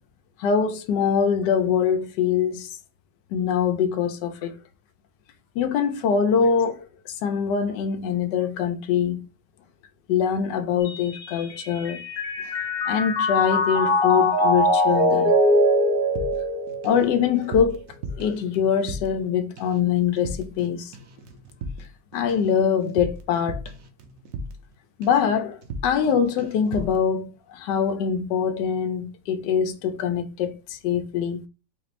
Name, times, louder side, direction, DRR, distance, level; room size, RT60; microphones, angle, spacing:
voice 1, 0.4-2.7 3.3-4.5 5.6-9.3 10.1-12.0 12.9-15.3 16.8-17.9 18.2-20.9 22.1-23.6 25.0-31.4, left 7 dB, 90° left, 1.3 m, -23 dB
Mallet percussion, 10.9-17.3, left 1 dB, 50° left, 0.8 m, -22 dB
sound 1, 16.2-17.1 17.3-19.3 19.6-19.9 20.2-20.7 20.9-24.7 25.0-25.3 25.6-26.1 26.4-27.0, right 1 dB, 65° right, 0.9 m, -36 dB
4.2 x 2.5 x 3.1 m
omnidirectional pair, 1.8 m